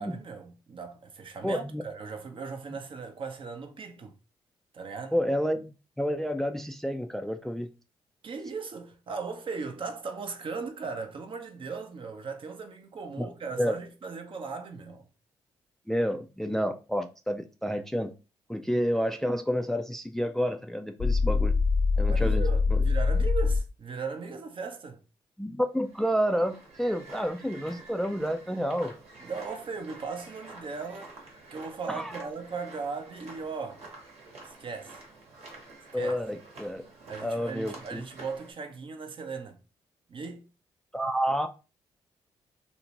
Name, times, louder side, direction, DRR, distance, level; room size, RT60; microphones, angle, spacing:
voice 1, 0.0-4.1 4.7-5.2 8.2-15.1 22.1-25.0 29.2-31.1 31.5-33.8 34.4-35.0 35.9-36.2 37.1-39.6 40.1-40.5, right 5 dB, 45° right, 0.6 m, -38 dB
voice 2, 1.4-1.8 5.1-7.7 13.6-13.7 15.9-18.1 18.5-21.6 22.0-22.4 22.7-22.8 25.4-28.9 31.9-32.3 35.9-36.8 37.2-38.0 40.9-41.5, equal, 5° left, 0.3 m, -29 dB
sound 1, 21.0-23.6, left 4 dB, 40° left, 0.7 m, -24 dB
sound 2, 25.8-38.5, right 2 dB, 65° right, 1.0 m, -49 dB
2.6 x 2.1 x 2.9 m
hypercardioid pair, 45°, 12 cm